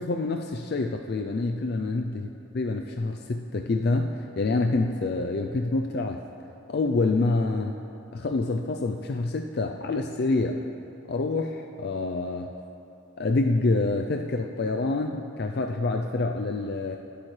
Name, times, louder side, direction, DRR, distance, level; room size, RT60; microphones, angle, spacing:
voice 1, 0.0-2.1 2.6-6.2 6.7-7.8 8.1-10.6 11.1-12.6 13.2-17.0, left 3 dB, 50° left, 4 dB, 0.4 m, -27 dB
18.5 x 8.6 x 3.2 m, 2.7 s
head